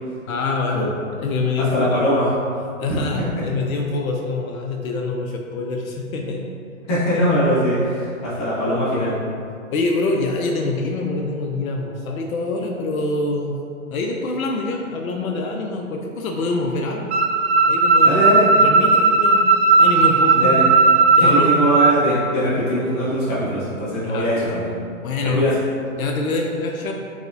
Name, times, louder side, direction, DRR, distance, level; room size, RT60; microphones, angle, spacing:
voice 1, 0.3-0.9 1.2-2.0 2.8-6.5 9.7-13.6 13.9-17.2 17.7-18.2 18.6-19.4 19.8-20.5 21.1-21.5 24.0-24.3 25.0-25.5 26.0-26.9, left 3 dB, 75° left, 1 dB, 0.5 m, -25 dB
voice 2, 1.7-2.3 6.9-9.2 18.0-18.5 20.3-20.6 21.2-24.7 25.3-25.5, equal, 20° left, -10 dB, 0.9 m, -21 dB
sound 1, 17.1-21.9, right 3 dB, 50° right, 0.5 m, -15 dB
4.7 x 2.1 x 2.5 m, 2.3 s
hypercardioid pair, 145°, 42 cm